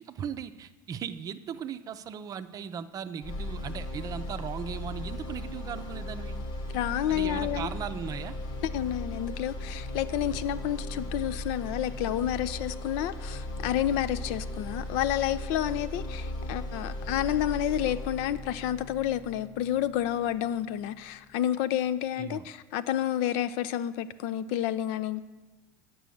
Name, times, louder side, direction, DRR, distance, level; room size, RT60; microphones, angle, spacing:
voice 1, 0.0-6.4 7.1-8.4 10.3-10.4 22.2-22.4, right 8 dB, 40° right, 0.6 m, -38 dB
sound 1, 3.2-21.2, left 1 dB, 45° left, 1.2 m, -37 dB
voice 2, 6.7-7.7 8.7-25.2, left 11 dB, 65° left, 0.5 m, -30 dB
8.2 x 6.1 x 7.7 m
hypercardioid pair, 95°, 10 cm